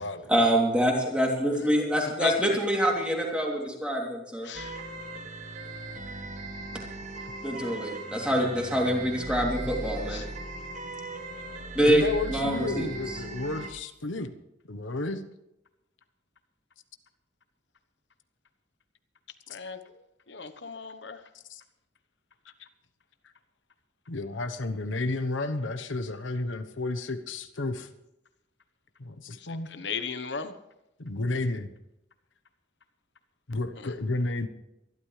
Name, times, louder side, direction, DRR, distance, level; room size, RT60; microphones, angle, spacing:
voice 1, 0.3-4.5 7.4-10.2 11.7-12.0 12.3-12.9, equal, 5° right, 3.1 m, -25 dB
voice 2, 2.2-2.6 4.5-4.8 10.1-10.2 19.5-19.8 20.3-21.2 29.7-30.5, left 5 dB, 65° left, 1.1 m, -35 dB
sound 1, 4.5-13.7, right 2 dB, 40° right, 1.2 m, -38 dB
voice 3, 11.8-14.3 14.7-15.2 21.5-21.6 24.1-27.9 29.0-29.7 31.0-31.7 33.5-34.5, left 2 dB, 90° left, 1.1 m, -32 dB
24.0 x 12.0 x 3.3 m
head